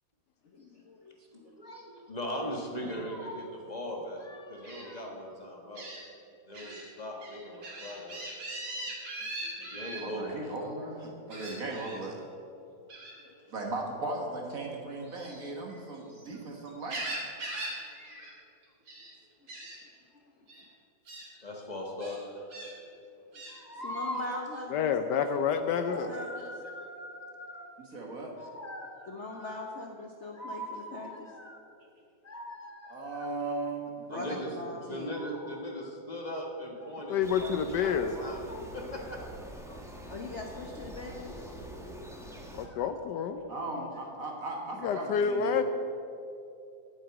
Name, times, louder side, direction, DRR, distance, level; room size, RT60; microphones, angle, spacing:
voice 1, 0.5-1.5 9.2-9.6 13.2-13.3 16.0-16.1 21.3-21.4 23.8-25.2 26.1-26.5 29.1-31.3 34.1-35.2 40.1-41.5, left 2 dB, 50° left, 1 dB, 1.0 m, -41 dB
voice 2, 1.3-5.9 6.5-8.2 8.5-8.6 9.6-10.6 17.9-18.4 21.3-22.4 22.8-22.9 23.4-24.4 25.9-27.7 28.4-29.6 30.3-31.6 32.2-33.3 34.1-34.5 34.8-39.2 39.6-40.1 42.6-42.8 44.0-44.3, equal, 25° left, 0 dB, 1.3 m, -40 dB
Gull seagull, 4.6-4.8 5.7-6.0 6.5-6.8 7.2-10.0 11.3-12.0 12.9-13.2 15.0-16.3 16.7-17.8 18.0-18.3 18.6-19.1 19.5-19.7 20.5-20.6 21.1-21.2 22.0-22.7 23.3-23.5, right 2 dB, 85° right, 3.2 m, -40 dB
voice 3, 9.4-12.2 13.5-17.1 27.8-28.3 32.9-34.2 43.5-45.6, right 2 dB, 50° right, 1 dB, 1.8 m, -38 dB
voice 4, 24.7-26.1 37.1-38.1 42.5-43.4 44.8-45.6, left 7 dB, 75° left, 8 dB, 1.1 m, -28 dB
sound 1, 37.2-42.7, right 1 dB, ahead, 0.8 m, -44 dB
8.9 x 7.8 x 8.5 m, 2.6 s
omnidirectional pair, 2.0 m